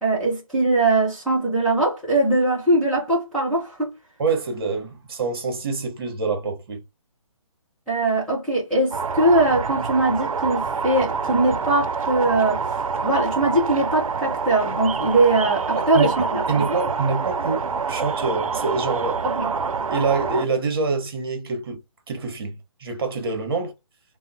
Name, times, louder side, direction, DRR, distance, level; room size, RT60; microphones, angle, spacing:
voice 1, 0.0-3.9 7.9-12.6 13.0-16.8 19.2-19.5, right 2 dB, ahead, 0.4 m, -21 dB
voice 2, 4.2-6.8 15.7-19.2 19.9-21.8 22.1-22.5 22.8-23.7, right 4 dB, 45° right, 0.9 m, -26 dB
sound 1, 8.9-20.5, right 5 dB, 90° right, 0.4 m, -26 dB
3.4 x 2.0 x 2.4 m
hypercardioid pair, 160°, 17 cm